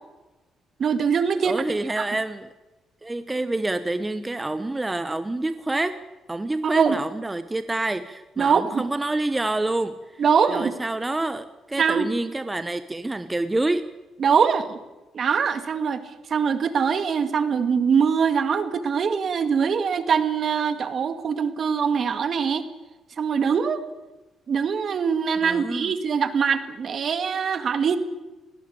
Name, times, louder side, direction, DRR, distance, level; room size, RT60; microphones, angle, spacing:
voice 1, 0.8-1.6 2.0-2.1 6.6-7.0 8.4-8.8 10.2-10.7 11.8-12.1 14.2-14.8 15.1-16.0 16.3-22.7 23.2-23.8 24.5-28.0, right 6 dB, 55° right, 10 dB, 2.1 m, -23 dB
voice 2, 1.4-2.5 3.0-6.0 6.3-10.2 10.5-13.9 25.4-25.9, right 2 dB, 15° right, 11 dB, 1.1 m, -27 dB
18.5 x 18.5 x 8.7 m, 1.1 s
cardioid pair, 90°, 0 cm